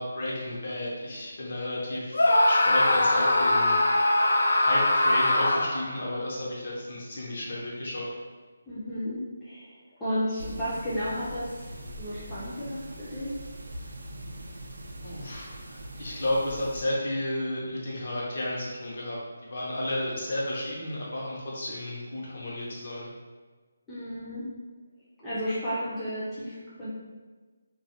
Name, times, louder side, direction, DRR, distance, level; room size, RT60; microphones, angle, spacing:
voice 1, 0.0-3.8 4.6-8.1 15.0-23.1, left 1 dB, 50° left, -5 dB, 0.7 m, -32 dB
Screaming, 2.1-5.9, left 1 dB, 90° left, 0.3 m, -22 dB
voice 2, 8.7-11.7 12.0-13.3 23.9-24.4 25.2-26.9, equal, 5° left, -13 dB, 0.4 m, -33 dB
sound 1, 10.4-16.8, right 1 dB, 70° right, 0.4 m, -42 dB
2.3 x 2.1 x 2.7 m, 1.4 s
hypercardioid pair, 175°, 0 cm